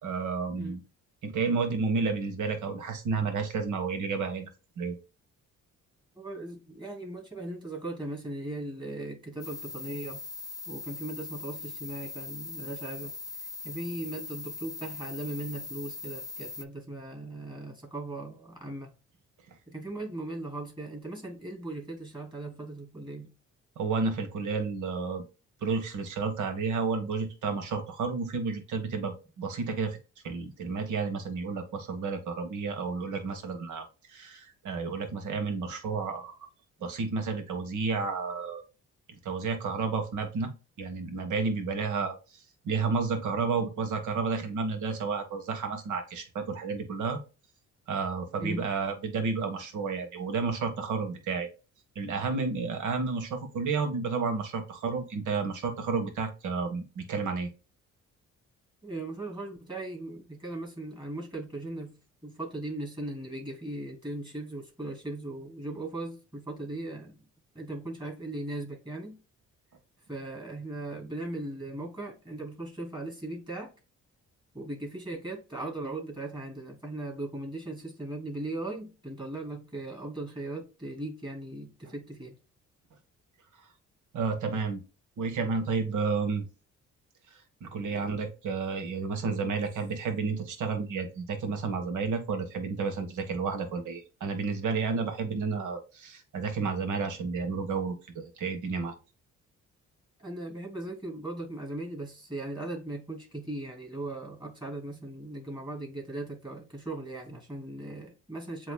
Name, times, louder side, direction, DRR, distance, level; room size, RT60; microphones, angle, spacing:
voice 1, 0.0-0.8 1.2-4.5 4.8-5.0 23.8-25.2 25.6-30.0 30.2-36.5 36.8-38.6 39.2-40.5 40.8-47.2 47.9-51.5 51.9-57.5 84.1-84.8 85.2-86.4 87.6-98.9, right 4 dB, 75° right, 1.5 m, -31 dB
voice 2, 6.1-10.2 10.7-13.1 13.4-18.9 19.7-23.3 48.4-48.7 58.8-61.9 62.2-67.3 67.5-69.2 70.1-73.7 74.5-82.4 87.8-88.1 89.2-89.5 100.2-108.7, right 2 dB, 15° right, 2.9 m, -38 dB
sound 1, 9.4-16.6, left 3 dB, 10° left, 0.4 m, -40 dB
7.8 x 3.0 x 2.3 m
cardioid pair, 90°, 30 cm